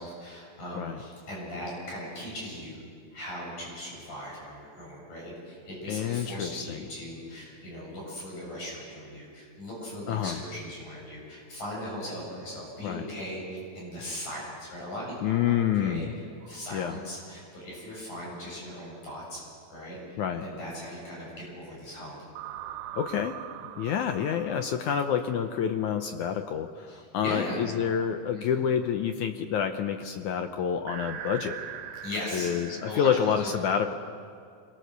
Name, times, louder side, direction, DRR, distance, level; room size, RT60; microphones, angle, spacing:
voice 1, 0.0-2.8 3.1-16.1 16.4-19.4 19.7-22.2 26.9-27.6 28.3-28.7 32.0-32.5 32.9-33.5, equal, 55° left, -4 dB, 9.2 m, -39 dB
voice 2, 5.9-6.8 10.1-10.4 12.8-13.1 15.2-16.1 16.7-17.0 20.2-20.4 22.9-23.4 23.7-31.6 32.3-33.9, left 8 dB, 75° left, 7 dB, 1.8 m, -28 dB
sound 1, 16.4-17.2 22.4-26.0 30.9-33.0, right 10 dB, 80° right, 2.8 m, -42 dB
27.5 x 22.5 x 6.7 m, 2.3 s
omnidirectional pair, 4.3 m